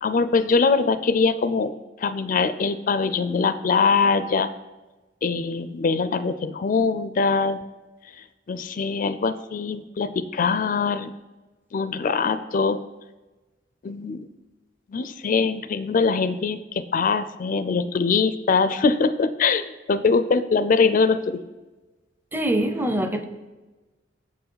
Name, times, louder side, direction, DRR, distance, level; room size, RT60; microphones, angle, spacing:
voice 1, 0.0-1.7 2.0-4.5 5.2-7.6 8.5-11.1 11.7-12.8 13.8-14.2 14.9-21.4, left 4 dB, 45° left, 12 dB, 0.4 m, -22 dB
voice 2, 22.3-23.2, right 1 dB, 10° right, 8 dB, 0.6 m, -24 dB
8.0 x 4.6 x 7.1 m, 1.2 s
head